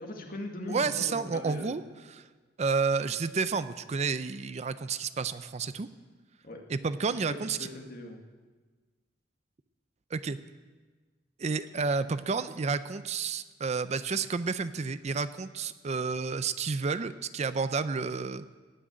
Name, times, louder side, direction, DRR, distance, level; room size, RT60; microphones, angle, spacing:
voice 1, 0.0-1.8 6.4-6.6 7.1-8.2, left 1 dB, 50° left, 1 dB, 1.9 m, -40 dB
voice 2, 0.7-1.8 2.1-2.3 2.6-5.9 6.7-7.7 10.1-10.4 11.4-18.5, right 4 dB, 35° right, 13 dB, 0.4 m, -30 dB
18.5 x 6.3 x 9.1 m, 1.4 s
head